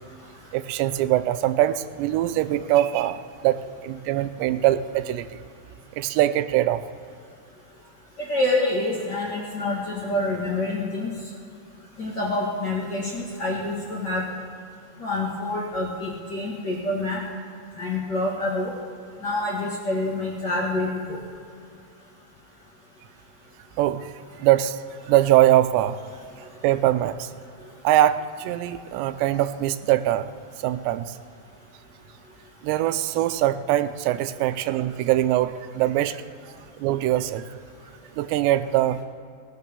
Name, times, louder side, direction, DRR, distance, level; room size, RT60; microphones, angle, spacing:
voice 1, 0.5-5.3 6.0-6.8 23.8-24.1 24.4-24.8 25.1-26.0 26.6-27.3 27.8-30.3 30.6-31.1 32.6-36.2 36.8-37.5 38.2-39.0, right 13 dB, 90° right, 11 dB, 2.8 m, -22 dB
voice 2, 8.2-11.1 12.0-14.2 15.0-17.2 17.8-18.7 19.2-21.2, left 2 dB, 40° left, -6 dB, 1.7 m, -27 dB
17.5 x 6.7 x 6.8 m, 2.5 s
omnidirectional pair, 4.9 m